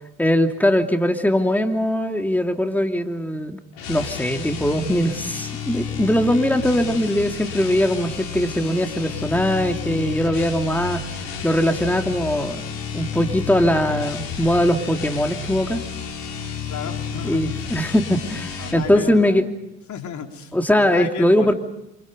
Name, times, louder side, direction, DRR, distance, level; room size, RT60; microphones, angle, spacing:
voice 1, 0.2-3.6 3.9-11.0 11.4-12.6 12.9-15.8 17.2-19.4 20.5-21.5, equal, 5° left, 5 dB, 2.7 m, -21 dB
sound 1, 3.7-18.9, left 6 dB, 75° left, 6.4 m, -31 dB
voice 2, 16.7-17.6 18.6-19.4 19.9-21.5, left 7 dB, 55° left, 4 dB, 3.7 m, -33 dB
29.5 x 27.5 x 5.2 m, 0.87 s
hypercardioid pair, 60°, 35 cm